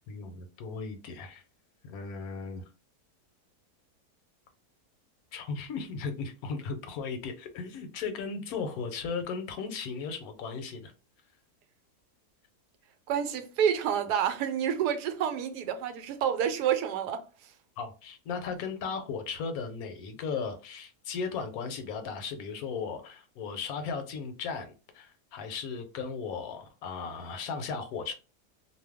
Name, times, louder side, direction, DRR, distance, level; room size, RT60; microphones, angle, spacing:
voice 1, 0.1-1.4 1.8-2.6 5.3-10.9 17.8-28.1, left 5 dB, 75° left, 1.0 m, -36 dB
voice 2, 13.1-17.2, right 8 dB, 90° right, 1.2 m, -28 dB
2.6 x 2.2 x 3.4 m
omnidirectional pair, 1.7 m